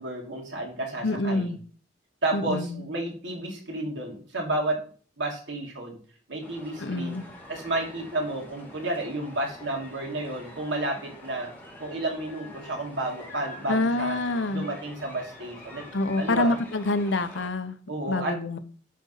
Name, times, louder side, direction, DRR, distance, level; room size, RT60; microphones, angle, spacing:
voice 1, 0.0-1.5 2.2-4.9 5.2-6.0 6.3-7.2 7.5-11.5 11.8-14.2 14.5-15.8 16.2-16.6 17.9-18.4, right 2 dB, 80° right, 3.0 m, -31 dB
voice 2, 1.0-1.6 2.3-2.8 6.8-7.2 13.7-14.6 15.9-17.8 18.1-18.6, left 2 dB, 85° left, 0.9 m, -26 dB
sound 1, 6.4-17.5, left 1 dB, 10° left, 2.3 m, -45 dB
11.0 x 4.2 x 5.6 m
head